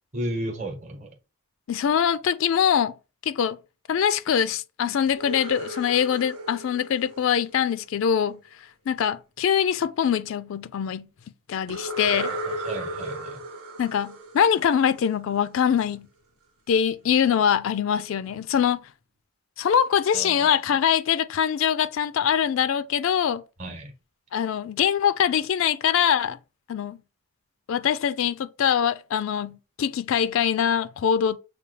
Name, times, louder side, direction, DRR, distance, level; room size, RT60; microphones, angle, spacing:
voice 1, 0.1-1.1 12.0-13.4 20.1-20.5 23.6-23.9, right 1 dB, 30° right, 0.9 m, -34 dB
voice 2, 1.7-2.9 3.2-3.6 3.9-8.4 8.9-11.1 11.5-12.3 13.8-16.1 16.7-18.8 19.6-23.4 24.3-26.4 26.7-27.0 27.7-31.4, left 8 dB, 60° left, 0.3 m, -23 dB
sound 1, 5.1-8.0 11.7-15.4, right 1 dB, 85° right, 1.0 m, -35 dB
6.7 x 2.3 x 3.2 m
head